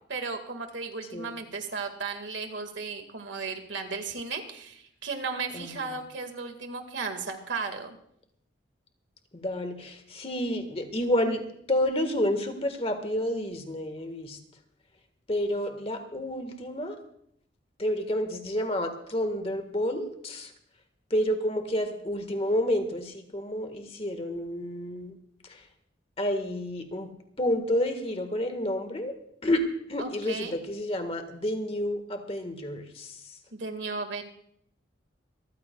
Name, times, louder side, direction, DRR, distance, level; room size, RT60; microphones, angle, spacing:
voice 1, 0.1-8.0 30.0-30.6 33.5-34.2, right 4 dB, 75° right, 6 dB, 1.8 m, -35 dB
voice 2, 5.5-5.9 9.3-14.4 15.3-16.9 17.8-20.5 21.1-25.1 25.4-25.6 26.2-27.1 27.4-29.2 29.4-29.6 29.9-33.4, left 1 dB, 30° left, 6 dB, 1.5 m, -30 dB
26.0 x 14.5 x 2.3 m, 0.70 s
head